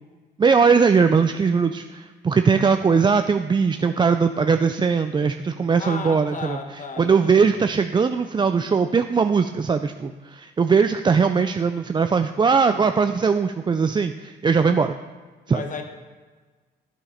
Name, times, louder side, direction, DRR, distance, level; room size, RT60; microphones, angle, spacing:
voice 1, 0.4-6.6 7.0-15.0 15.5-15.6, right 5 dB, 25° right, 8 dB, 0.3 m, -20 dB
voice 2, 5.8-7.6 12.7-13.0 14.7-14.9 15.5-15.8, left 4 dB, 40° left, 5 dB, 1.2 m, -35 dB
9.8 x 7.1 x 5.1 m, 1.4 s
cardioid pair, 90°, 20 cm